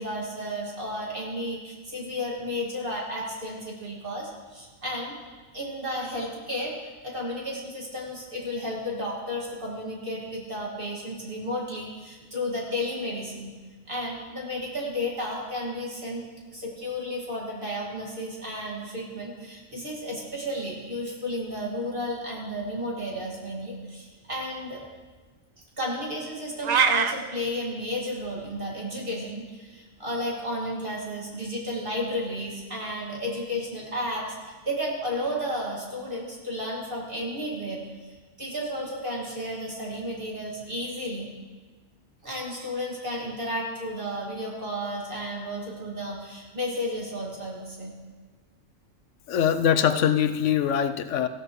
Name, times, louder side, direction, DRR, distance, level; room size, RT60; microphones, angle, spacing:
voice 1, 0.0-5.1 5.5-13.6 13.9-16.2 16.5-24.8 25.8-41.3 42.2-48.0, equal, 45° right, -3 dB, 2.3 m, -33 dB
sound 1, 26.6-27.1, right 6 dB, 65° right, 0.4 m, -21 dB
voice 2, 49.3-51.3, left 9 dB, 75° left, 10 dB, 0.9 m, -23 dB
15.0 x 13.0 x 3.1 m, 1.3 s
omnidirectional pair, 1.3 m